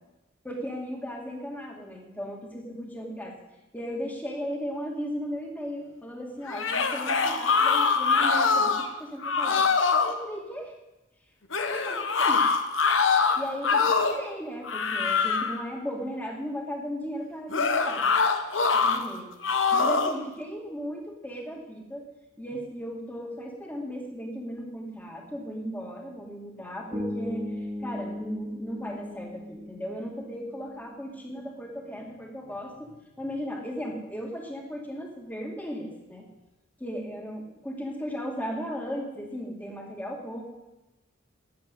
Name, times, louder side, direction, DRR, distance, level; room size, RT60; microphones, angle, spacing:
voice 1, 0.4-3.3 3.7-9.7 10.0-10.7 11.6-12.4 13.4-18.1 18.8-19.3 19.7-22.0 22.4-32.9 33.2-36.3 36.8-40.4, equal, 10° left, 1 dB, 2.5 m, -36 dB
sound 1, 6.5-8.9 9.2-10.1 11.5-14.2 14.6-15.6 17.5-19.0 19.4-20.2, left 5 dB, 70° left, 1.3 m, -24 dB
Bass guitar, 26.9-31.0, left 1 dB, 20° right, 2.1 m, -37 dB
13.0 x 9.6 x 8.3 m, 1.0 s
head